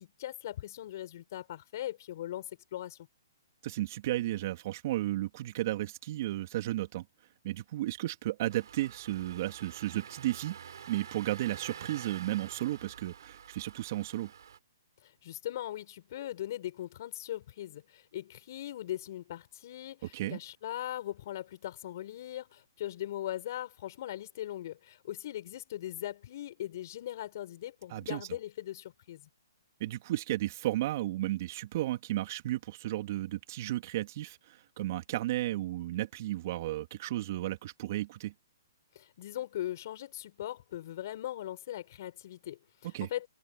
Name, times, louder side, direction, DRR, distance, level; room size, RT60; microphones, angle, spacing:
voice 1, 0.0-3.1 15.0-29.3 38.9-43.3, left 12 dB, 50° left, 6.5 m, -40 dB
voice 2, 3.6-7.0 7.4-10.6 10.9-14.3 20.1-20.4 27.9-28.3 29.8-38.3 42.9-43.1, right 15 dB, 45° right, 2.8 m, -33 dB
Engine starting, 8.5-14.6, right 8 dB, 70° right, 3.2 m, -48 dB
hypercardioid pair, 145°, 2 cm